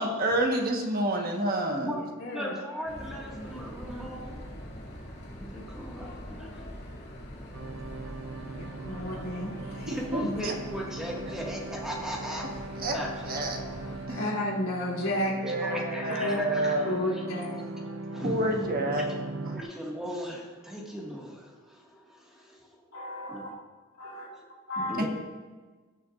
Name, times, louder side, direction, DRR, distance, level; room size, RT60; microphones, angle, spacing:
voice 1, 0.0-1.9 9.9-10.5 12.8-13.0 13.3-13.6 14.1-14.2 15.4-17.0 18.2-19.1 25.0-25.1, right 1 dB, 45° right, 2 dB, 1.2 m, -28 dB
voice 2, 1.8-2.5 8.6-9.9 10.2-10.3 14.1-15.3 16.2-16.4 16.8-17.6 22.9-23.5 24.0-24.3 24.7-25.0, left 1 dB, 75° left, -5 dB, 3.0 m, -33 dB
voice 3, 2.3-4.4 5.3-6.6 7.1-7.2 8.9-9.0 9.9-12.5 12.9-13.5 15.6-17.2 18.1-18.7 19.5-23.4 24.0-24.4 24.8-25.1, equal, 5° right, -3 dB, 1.7 m, -38 dB
sound 1, 2.8-14.1, equal, 45° left, 2.4 m, -43 dB
sound 2, 7.5-19.6, right 2 dB, 70° right, 0.7 m, -39 dB
19.0 x 6.8 x 2.5 m, 1.3 s
head